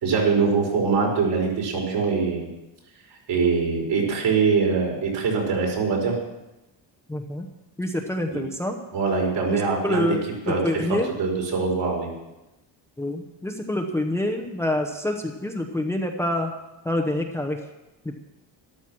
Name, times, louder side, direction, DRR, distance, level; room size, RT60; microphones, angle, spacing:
voice 1, 0.0-2.5 3.3-6.2 8.3-8.4 8.9-10.2 10.5-10.6 11.2-12.1, right 5 dB, 65° right, -1 dB, 5.1 m, -23 dB
voice 2, 7.1-7.5 7.8-8.8 9.5-11.1 13.0-16.5 16.8-17.6 18.0-18.1, left 1 dB, 5° left, 3 dB, 0.8 m, -27 dB
13.0 x 12.5 x 6.2 m, 1.0 s
cardioid pair, 165°, 45 cm